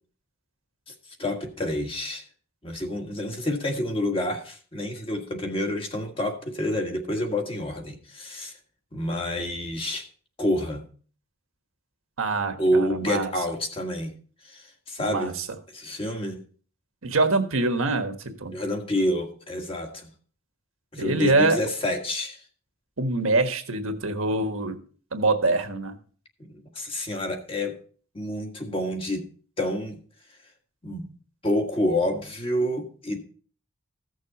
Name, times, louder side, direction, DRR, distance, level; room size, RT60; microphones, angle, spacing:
voice 1, 1.2-2.2 2.6-8.5 8.9-10.1 10.4-10.8 12.6-14.1 14.4-15.3 15.7-16.4 18.5-20.1 20.9-22.4 26.5-27.8 28.1-29.3 29.6-30.0 30.8-31.1 31.4-33.2, left 1 dB, 25° left, 1.6 m, -28 dB
voice 2, 12.2-13.3 15.0-15.4 17.0-18.5 21.0-21.6 23.0-24.8 25.1-25.9, right 3 dB, 80° right, 1.5 m, -24 dB
15.0 x 6.5 x 4.1 m
head